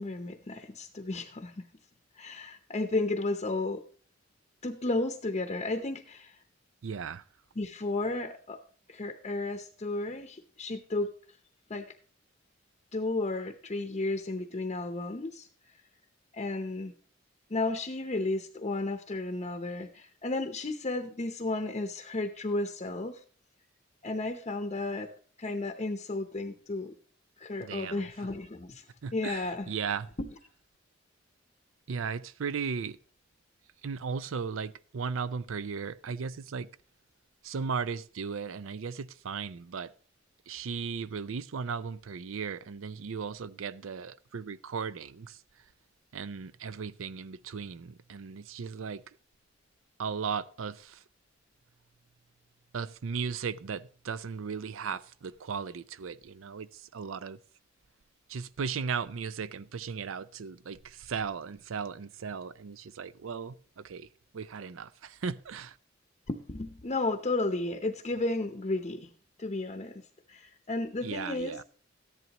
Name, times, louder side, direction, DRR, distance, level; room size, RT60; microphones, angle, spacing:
voice 1, 0.0-1.7 2.1-3.9 4.6-6.4 7.6-8.6 8.9-11.1 11.7-11.9 12.9-15.5 16.3-16.9 17.5-23.2 24.0-25.1 25.4-26.9 27.4-28.9 29.1-29.7 30.2-30.3 66.3-69.1 69.4-70.0 70.3-71.6, left 2 dB, 35° left, 0.7 m, -33 dB
voice 2, 6.8-7.2 27.6-28.1 29.0-30.1 31.9-33.0 33.8-36.7 37.4-39.9 40.5-45.4 46.1-49.0 50.0-51.0 52.7-57.4 58.3-64.1 64.3-65.8 71.0-71.6, right 6 dB, 90° right, 0.5 m, -36 dB
13.5 x 11.0 x 2.9 m
head